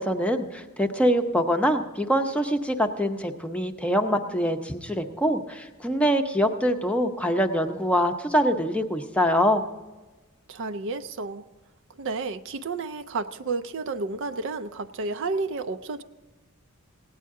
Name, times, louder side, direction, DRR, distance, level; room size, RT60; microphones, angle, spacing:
voice 1, 0.0-9.6, equal, 5° left, 5 dB, 0.7 m, -24 dB
voice 2, 10.5-11.5 12.0-16.0, right 3 dB, 55° right, 10 dB, 0.5 m, -31 dB
17.0 x 9.6 x 3.7 m, 1.2 s
head